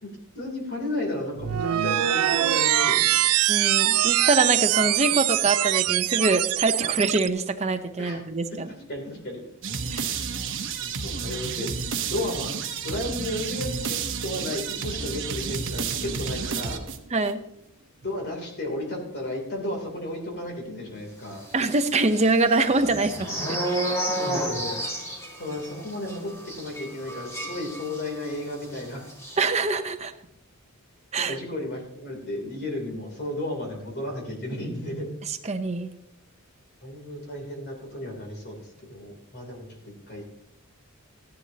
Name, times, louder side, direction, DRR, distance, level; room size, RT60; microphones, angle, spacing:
voice 1, 0.3-3.2 8.0-8.2 8.9-9.4 9.8-10.0 10.8-11.7 12.1-12.5 12.8-16.8 18.0-21.5 24.1-24.8 25.4-29.1 31.2-35.1 36.8-38.6 38.9-40.2, left 1 dB, 50° left, 1 dB, 3.0 m, -33 dB
sound 1, 1.4-7.3, right 14 dB, 75° right, 0.4 m, -23 dB
voice 2, 3.5-8.7 9.9-10.0 17.1-17.4 21.5-23.6 29.4-30.1 31.1-31.4 35.3-35.9, right 3 dB, 30° right, 7 dB, 0.7 m, -24 dB
sound 2, 9.6-17.3, right 6 dB, 60° right, 0.9 m, -31 dB
sound 3, 21.6-28.3 28.6-28.8 29.1-29.4, right 1 dB, 15° left, 1.8 m, -31 dB
14.0 x 10.5 x 2.8 m, 0.76 s
head